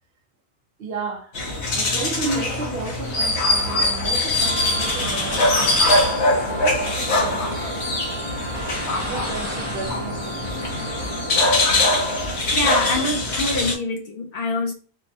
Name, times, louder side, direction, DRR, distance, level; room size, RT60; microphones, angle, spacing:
voice 1, 0.8-1.4 1.7-7.6 9.0-10.5, right 3 dB, 70° right, 0.8 m, -33 dB
sound 1, 1.3-13.8, left 2 dB, 80° left, 1.1 m, -22 dB
sound 2, 3.0-11.2, left 1 dB, 25° left, 0.3 m, -36 dB
Wind instrument woodwind instrument, 4.4-12.5, right 4 dB, 35° right, 0.6 m, -36 dB
voice 2, 12.5-14.7, left 2 dB, 65° left, 0.7 m, -25 dB
4.5 x 2.1 x 2.6 m
omnidirectional pair, 1.1 m